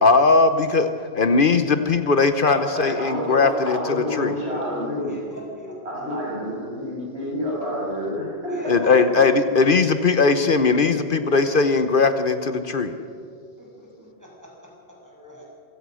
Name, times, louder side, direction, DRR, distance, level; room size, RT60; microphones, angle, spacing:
voice 1, 0.0-0.9 1.1-4.3 8.7-12.9, left 4 dB, 55° left, 9 dB, 1.1 m, -19 dB
voice 2, 2.5-5.1 5.9-8.8, equal, 75° right, -5 dB, 7.2 m, -29 dB
voice 3, 5.0-5.7 8.5-9.7 13.6-15.4, equal, 15° right, -3 dB, 6.5 m, -39 dB
26.5 x 16.5 x 6.3 m, 2.3 s
omnidirectional pair, 1.1 m